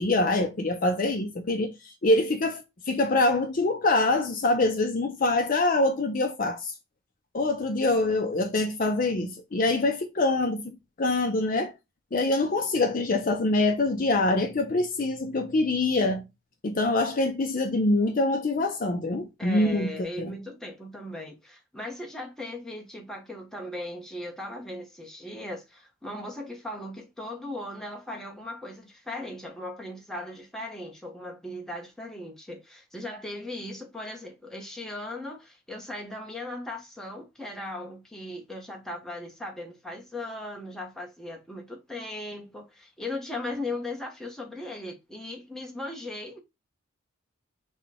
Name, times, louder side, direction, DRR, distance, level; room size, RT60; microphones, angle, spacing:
voice 1, 0.0-6.7 7.3-11.7 12.1-16.2 16.6-20.3, left 2 dB, 40° left, 0.5 m, -25 dB
voice 2, 19.4-46.4, left 1 dB, ahead, 0.8 m, -38 dB
6.1 x 2.2 x 3.4 m
head